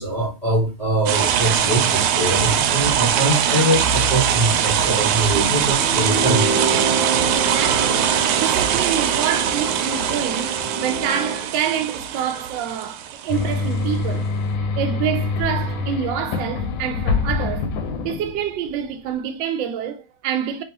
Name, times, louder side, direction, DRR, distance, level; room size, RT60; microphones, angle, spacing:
voice 1, 0.0-6.5, right 1 dB, 40° left, 0.5 m, -22 dB
sound 1, 1.1-13.6, right 9 dB, 90° right, 1.5 m, -21 dB
sound 2, 5.7-11.5, right 3 dB, 50° right, 1.2 m, -27 dB
voice 2, 7.3-17.7 18.0-20.6, right 9 dB, 70° right, 1.3 m, -27 dB
sound 3, 13.3-18.7, left 4 dB, 75° left, 1.4 m, -25 dB
4.2 x 3.0 x 2.8 m
omnidirectional pair, 2.3 m